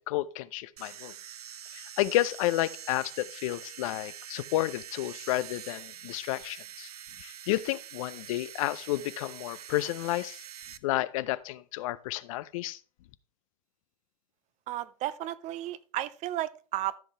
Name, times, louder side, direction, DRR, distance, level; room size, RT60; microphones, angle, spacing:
voice 1, 0.1-1.1 1.7-6.9 7.2-10.4 10.8-12.8, left 16 dB, 60° left, 0.5 m, -31 dB
sound 1, 0.8-10.8, right 10 dB, 80° right, 0.6 m, -45 dB
voice 2, 14.7-17.0, right 14 dB, 35° right, 0.6 m, -33 dB
14.0 x 5.4 x 3.3 m
hypercardioid pair, 100°, 19 cm